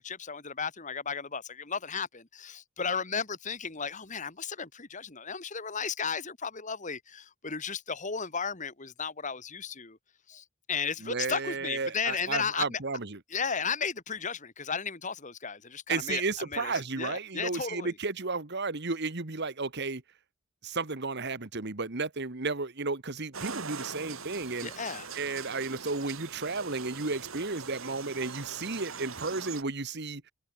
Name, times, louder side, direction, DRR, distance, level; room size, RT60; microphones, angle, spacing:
voice 1, 0.0-10.0 10.3-12.8 13.3-16.2 16.5-17.9 24.6-25.1, left 6 dB, 35° left, 2.0 m, -34 dB
voice 2, 11.0-13.2 15.9-20.0 20.6-24.7 25.1-30.3, right 3 dB, 50° right, 1.6 m, -33 dB
sound 1, 23.3-29.6, right 5 dB, 75° right, 4.0 m, -42 dB
head